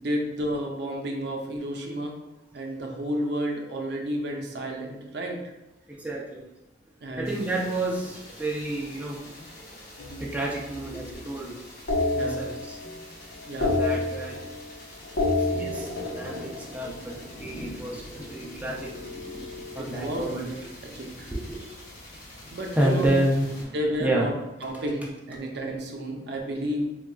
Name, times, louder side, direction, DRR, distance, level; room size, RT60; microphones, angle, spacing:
voice 1, 0.0-2.2 2.5-5.4 7.0-7.4 12.1-12.4 13.5-13.8 19.8-20.5 20.8-21.3 22.5-23.2 23.7-24.3 24.6-26.9, equal, 65° right, 1 dB, 0.5 m, -31 dB
voice 2, 5.9-6.4 7.1-9.3 10.2-11.6 12.1-12.8 13.6-14.4 15.5-18.9 19.4-20.5 21.3-21.7 22.8-24.3, right 1 dB, 10° right, -3 dB, 0.4 m, -30 dB
sound 1, 7.2-23.6, left 1 dB, 60° left, 1.0 m, -47 dB
sound 2, 10.0-11.3 11.9-13.0 13.3-14.7 15.0-17.4 18.6-20.3, left 2 dB, 90° left, 0.7 m, -30 dB
sound 3, 15.0-24.6, left 1 dB, 45° left, 0.6 m, -47 dB
3.7 x 2.2 x 2.3 m, 1.0 s
head